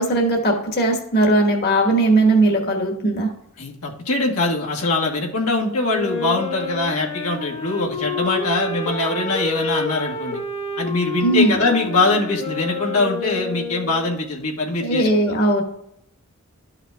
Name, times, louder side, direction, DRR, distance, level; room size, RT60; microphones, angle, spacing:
voice 1, 0.0-3.3 11.2-11.6 14.8-15.6, right 2 dB, 50° left, 1 dB, 1.4 m, -18 dB
voice 2, 3.6-10.4 10.8-15.4, left 2 dB, 90° left, -2 dB, 1.5 m, -22 dB
Wind instrument woodwind instrument, 5.8-14.2, left 4 dB, 30° left, 1.1 m, -29 dB
12.5 x 5.8 x 2.3 m, 0.75 s
head